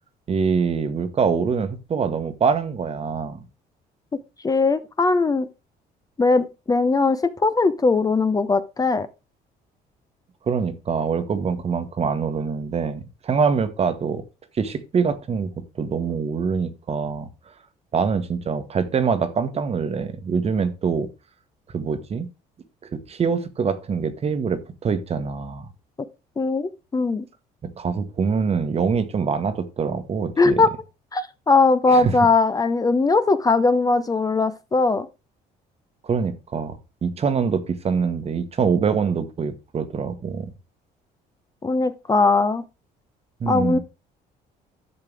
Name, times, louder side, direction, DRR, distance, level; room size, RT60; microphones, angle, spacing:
voice 1, 0.3-3.4 10.5-14.2 14.6-15.5 15.8-17.3 17.9-21.1 21.7-22.3 22.8-25.7 27.8-30.6 31.9-32.2 36.0-40.5 43.4-43.8, right 5 dB, 35° right, 1.2 m, -24 dB
voice 2, 4.4-5.5 6.2-9.1 26.4-27.2 30.4-30.7 31.1-35.1 41.6-42.6 43.5-43.8, left 3 dB, 20° left, 0.6 m, -20 dB
11.0 x 6.6 x 3.4 m
cardioid pair, 110°, 17 cm